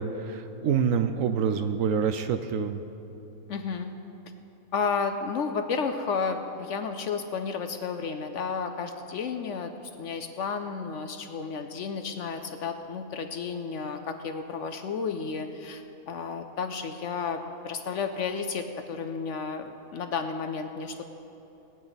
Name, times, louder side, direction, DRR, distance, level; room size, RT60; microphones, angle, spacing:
voice 1, 0.0-2.8, right 7 dB, 70° right, 8 dB, 0.9 m, -26 dB
voice 2, 3.5-3.9 4.7-21.1, left 5 dB, 60° left, 7 dB, 0.8 m, -32 dB
20.5 x 8.8 x 4.0 m, 2.9 s
omnidirectional pair, 1.6 m